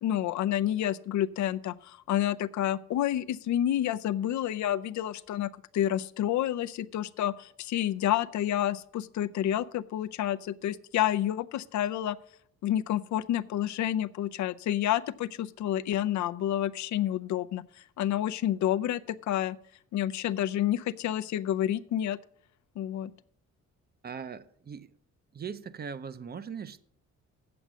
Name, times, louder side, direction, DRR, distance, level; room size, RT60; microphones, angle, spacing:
voice 1, 0.0-12.2 12.6-17.6 18.0-19.6 19.9-22.2 22.8-23.1, left 12 dB, 70° left, 0.5 m, -29 dB
voice 2, 24.0-24.9 25.3-26.8, right 6 dB, 30° right, 0.6 m, -40 dB
8.0 x 7.8 x 6.2 m
cardioid pair, 90°, 30 cm